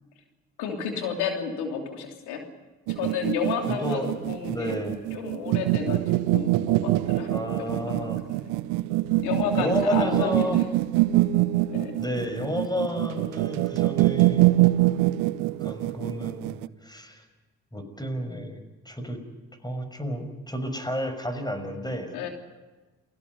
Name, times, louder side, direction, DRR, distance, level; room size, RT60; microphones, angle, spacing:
voice 1, 0.6-2.4 2.9-4.7 5.1-7.3 7.6-8.1 9.2-10.7 11.7-12.0 22.1-22.3, left 6 dB, 80° left, 3 dB, 3.2 m, -31 dB
sound 1, 2.9-16.7, right 17 dB, 75° right, 0.7 m, -24 dB
voice 2, 3.7-4.1 4.5-5.0 7.3-8.2 9.6-10.6 12.0-14.6 14.9-15.0 15.6-17.2 17.7-19.2 19.6-22.1, equal, 10° left, 8 dB, 6.0 m, -31 dB
29.0 x 20.0 x 5.5 m, 1.2 s
hypercardioid pair, 45°, 39 cm